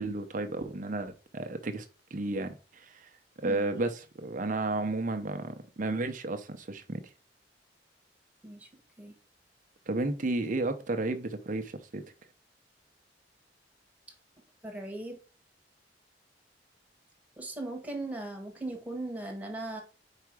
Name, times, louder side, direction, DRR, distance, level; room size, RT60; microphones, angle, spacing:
voice 1, 0.0-1.9 2.1-3.1 3.4-7.0 9.9-12.0, right 2 dB, 45° right, 0.6 m, -32 dB
voice 2, 14.6-15.2 17.4-19.8, right 2 dB, 10° right, 1.5 m, -38 dB
4.9 x 4.6 x 4.8 m
head